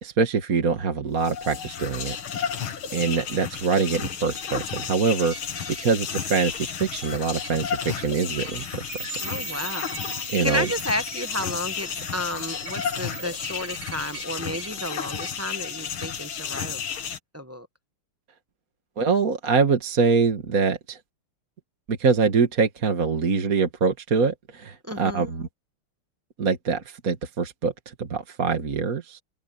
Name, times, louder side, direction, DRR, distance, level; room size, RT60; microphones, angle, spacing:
voice 1, 0.0-2.4 2.9-5.4 5.8-8.9 10.3-10.7 19.0-21.0 21.9-25.5 26.4-29.2, right 5 dB, 40° right, 2.0 m, -24 dB
sound 1, 1.1-17.2, left 7 dB, 70° left, 2.4 m, -33 dB
sound 2, 5.3-15.3, right 4 dB, 85° right, 5.2 m, -40 dB
voice 2, 9.2-16.8 17.3-17.7 24.8-25.3, left 1 dB, 15° right, 0.5 m, -32 dB
omnidirectional pair, 2.4 m